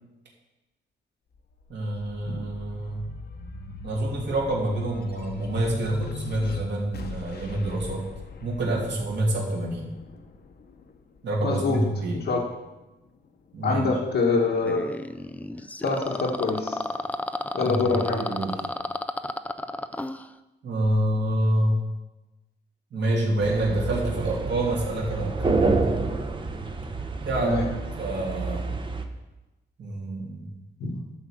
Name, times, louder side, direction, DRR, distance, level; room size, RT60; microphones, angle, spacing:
sound 1, 1.3-12.1 12.7-13.8, left 3 dB, 55° left, 0.9 m, -40 dB
voice 1, 1.7-3.0 3.8-8.0 8.4-9.9 11.2-12.2 13.5-13.8 17.6-17.9 18.2-18.5 20.6-21.8 22.9-25.8 27.2-27.6 28.0-28.7 29.8-30.6, right 1 dB, 65° right, -3 dB, 2.9 m, -27 dB
voice 2, 11.4-12.4 13.6-14.8 15.8-16.8 17.5-18.4 27.4-27.7 30.8-31.0, left 3 dB, 75° left, -4 dB, 1.4 m, -25 dB
sound 2, 14.7-20.3, left 1 dB, 10° left, 0.4 m, -32 dB
sound 3, 23.4-29.0, right 3 dB, 25° right, 0.8 m, -28 dB
11.5 x 4.8 x 7.3 m, 1.1 s
wide cardioid pair, 125°, 19 cm